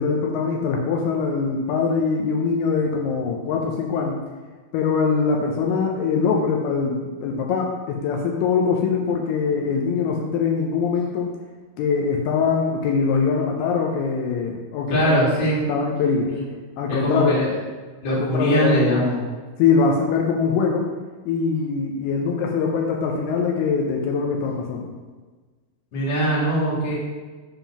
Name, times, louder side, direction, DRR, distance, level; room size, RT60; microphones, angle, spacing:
voice 1, 0.0-4.2 4.7-11.3 11.8-15.2 15.7-16.3 16.8-17.4 18.1-18.8 19.6-20.9 21.3-24.9, left 5 dB, 80° left, 0 dB, 2.5 m, -22 dB
voice 2, 14.9-15.6 16.3-16.4 16.9-17.5 18.0-19.2 25.9-26.9, equal, 40° left, -6 dB, 2.1 m, -21 dB
7.0 x 3.6 x 5.8 m, 1.4 s
omnidirectional pair, 4.6 m